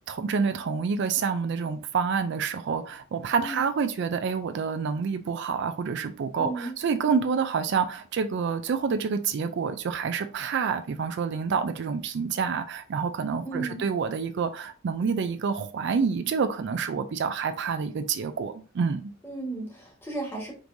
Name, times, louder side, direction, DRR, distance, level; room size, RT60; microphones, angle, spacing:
voice 1, 0.1-19.1, right 6 dB, 60° right, 0.4 m, -28 dB
voice 2, 6.4-6.8 13.4-13.9 19.2-20.5, right 2 dB, 10° left, 1.3 m, -34 dB
5.1 x 3.1 x 2.6 m
head